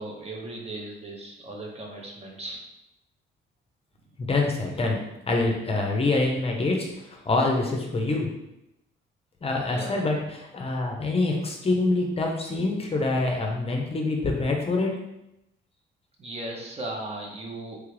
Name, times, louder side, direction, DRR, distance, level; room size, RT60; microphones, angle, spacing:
voice 1, 0.0-2.6 9.7-10.0 16.2-17.8, right 2 dB, 30° right, 0 dB, 0.7 m, -37 dB
voice 2, 4.2-8.3 9.4-15.0, left 2 dB, 30° left, 1 dB, 0.6 m, -26 dB
3.3 x 2.3 x 3.2 m, 0.86 s
cardioid pair, 90°, 20 cm